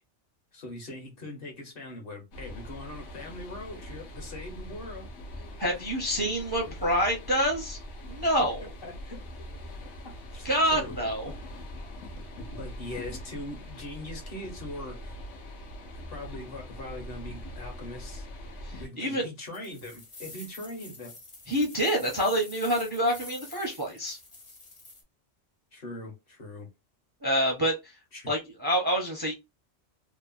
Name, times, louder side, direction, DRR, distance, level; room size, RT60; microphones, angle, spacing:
voice 1, 0.5-5.1 8.8-9.5 10.0-10.9 12.5-15.2 16.1-18.3 18.8-21.1 25.7-26.7 28.1-28.3, left 1 dB, 55° left, 1.1 m, -41 dB
sound 1, 2.3-18.9, equal, 75° left, 1.0 m, -42 dB
voice 2, 5.6-7.8 8.1-8.6 10.4-11.3 18.6-19.3 21.5-24.2 27.2-28.0 28.3-29.3, equal, 25° right, 0.5 m, -27 dB
sound 2, 19.4-25.0, left 2 dB, 35° left, 0.6 m, -47 dB
2.9 x 2.0 x 2.4 m
omnidirectional pair, 1.2 m